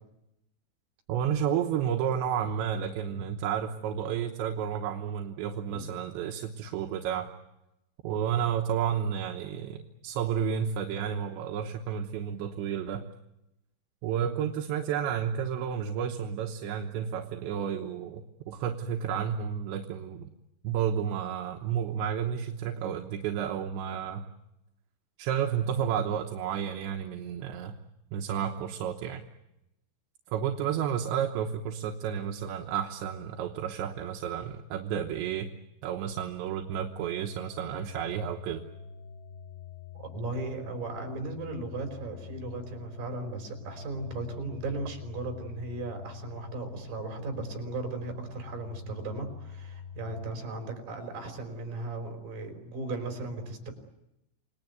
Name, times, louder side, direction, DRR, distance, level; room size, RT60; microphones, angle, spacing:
voice 1, 1.1-7.3 8.0-13.0 14.0-20.3 20.6-24.2 25.2-27.8 28.1-29.2 30.3-35.5 35.8-38.6, right 8 dB, 75° right, 3 dB, 3.1 m, -31 dB
sound 1, 36.7-50.3, left 6 dB, 75° left, 3.6 m, -45 dB
voice 2, 39.9-53.7, right 2 dB, 45° right, 4 dB, 6.1 m, -37 dB
29.0 x 19.0 x 9.4 m, 0.91 s
omnidirectional pair, 5.8 m